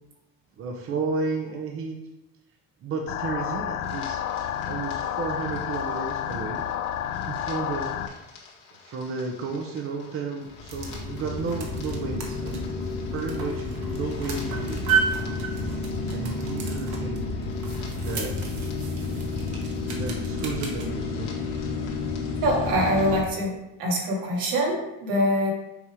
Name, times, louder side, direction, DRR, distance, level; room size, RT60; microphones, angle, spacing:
voice 1, 0.6-2.0 2.8-6.7 7.3-8.0 8.8-12.7 13.1-14.9 16.1-17.2 17.9-18.5 19.9-21.3, right 4 dB, 45° right, 2 dB, 0.8 m, -32 dB
sound 1, 3.1-8.1, left 10 dB, 50° left, 0.5 m, -30 dB
sound 2, 3.8-23.2, left 3 dB, 75° left, 1.8 m, -32 dB
sound 3, 10.4-20.9, right 6 dB, 65° right, 1.4 m, -34 dB
voice 2, 22.4-23.5 23.8-25.5, equal, 85° right, -2 dB, 2.2 m, -24 dB
7.1 x 3.6 x 4.8 m, 0.94 s
cardioid pair, 135°, 31 cm